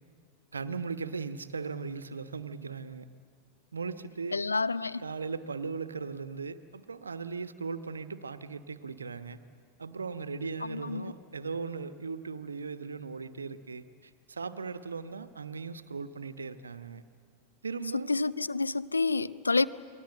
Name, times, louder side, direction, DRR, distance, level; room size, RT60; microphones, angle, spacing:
voice 1, 0.5-3.1 3.7-4.4 5.0-9.4 9.8-17.0 17.6-18.1, right 5 dB, 75° right, 1.1 m, -38 dB
voice 2, 4.3-5.0 10.6-11.1 17.9-19.7, left 3 dB, 80° left, 0.6 m, -29 dB
28.0 x 21.0 x 7.9 m
figure-of-eight pair, 90°, 0 cm